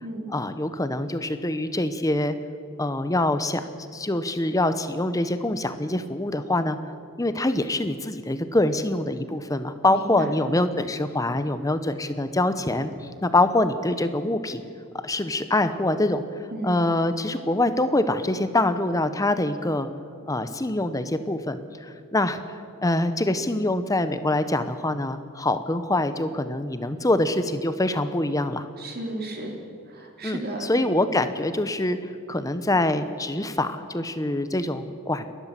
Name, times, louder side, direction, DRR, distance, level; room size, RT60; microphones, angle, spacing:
voice 1, 0.3-2.4 2.8-3.7 3.9-6.8 7.2-12.9 13.2-14.6 15.0-19.9 20.3-28.7 30.2-35.3, left 1 dB, 15° left, 11 dB, 0.8 m, -25 dB
voice 2, 9.9-10.4 16.5-16.8 28.8-29.5 29.9-30.7, right 1 dB, 45° right, 2 dB, 3.4 m, -34 dB
29.5 x 12.0 x 7.5 m, 2.3 s
head